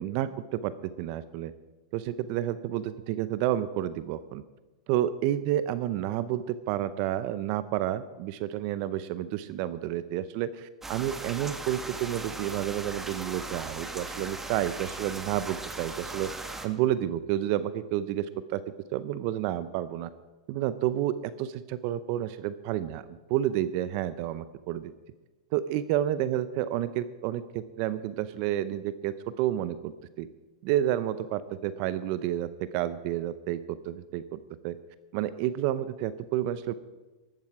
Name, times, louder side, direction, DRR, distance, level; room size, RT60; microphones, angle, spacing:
voice 1, 0.0-1.5 1.9-4.4 4.9-16.3 16.6-18.6 18.9-20.1 20.5-24.9 25.5-30.3 30.6-34.4 34.6-34.8 35.1-36.7, right 12 dB, 50° right, 14 dB, 0.6 m, -30 dB
sound 1, 10.8-16.7, right 2 dB, 10° right, 1.4 m, -38 dB
15.0 x 12.5 x 4.8 m, 1.2 s
hypercardioid pair, 110°, 3 cm